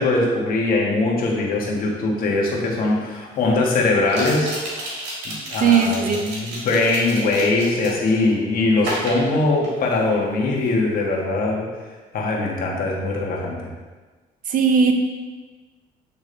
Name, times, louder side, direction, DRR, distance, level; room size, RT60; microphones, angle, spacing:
voice 1, 0.0-4.5 5.2-11.7 12.1-13.7, left 2 dB, 60° left, -1 dB, 1.4 m, -21 dB
sound 1, 2.3-2.4 4.0-8.2 8.8-10.1 10.4-10.7, right 1 dB, 85° right, 1.9 m, -32 dB
voice 2, 5.6-6.2 6.4-6.6 14.5-14.9, right 6 dB, 55° right, 5 dB, 0.7 m, -18 dB
8.1 x 3.5 x 3.3 m, 1.3 s
cardioid pair, 110°, 17 cm